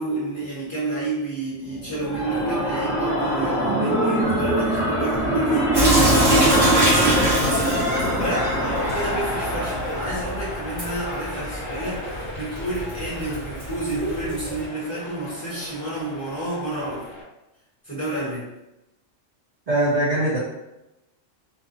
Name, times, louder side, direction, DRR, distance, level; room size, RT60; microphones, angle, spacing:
voice 1, 0.0-17.0 17.8-18.4, right 2 dB, 15° left, -10 dB, 1.4 m, -30 dB
sound 1, 1.7-10.5, right 1 dB, 35° left, 1.1 m, -23 dB
Sink (filling or washing) / Drip, 5.7-14.6, equal, 40° right, 1.1 m, -26 dB
sound 2, 7.2-17.2, left 1 dB, 70° left, 0.9 m, -36 dB
voice 2, 19.7-20.4, right 1 dB, 65° right, -7 dB, 0.3 m, -21 dB
2.6 x 2.4 x 2.6 m, 0.92 s
omnidirectional pair, 1.3 m